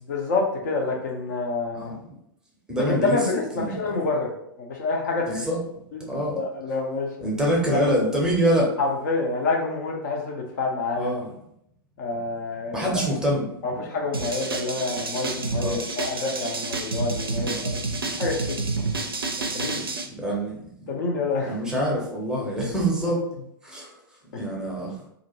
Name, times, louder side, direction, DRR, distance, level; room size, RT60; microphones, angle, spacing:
voice 1, 0.1-1.9 2.8-5.4 5.9-6.0 6.3-7.3 7.7-7.8 8.8-11.1 12.0-13.0 13.6-17.8 18.1-18.6 19.4-19.8 20.9-21.5 24.3-24.5, left 3 dB, 50° left, 0 dB, 0.6 m, -27 dB
voice 2, 2.7-3.2 3.5-3.8 5.3-5.6 6.1-6.4 7.2-8.7 10.9-11.3 12.7-13.4 15.6-15.8 17.4-17.7 20.1-20.9 21.4-23.2 23.6-23.9 24.4-25.0, equal, 5° right, -4 dB, 0.7 m, -25 dB
sound 1, 14.1-20.1, right 3 dB, 80° right, 0.4 m, -29 dB
2.5 x 2.1 x 3.0 m, 0.73 s
figure-of-eight pair, 100°, 12 cm